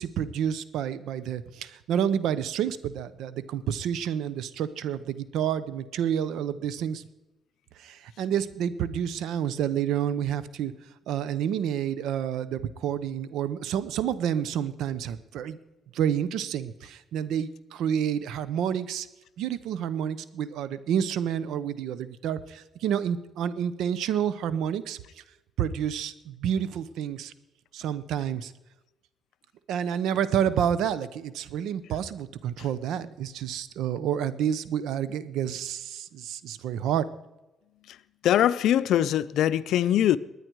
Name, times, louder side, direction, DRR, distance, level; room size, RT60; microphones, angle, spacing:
voice 1, 0.0-7.0 7.8-10.7 11.1-15.6 15.9-19.1 19.4-25.0 25.6-27.3 27.7-28.5 29.7-37.1, right 9 dB, 85° right, 0.8 m, -29 dB
voice 2, 38.2-40.2, left 11 dB, 80° left, 0.6 m, -22 dB
21.0 x 9.6 x 4.7 m
cardioid pair, 90°, 0 cm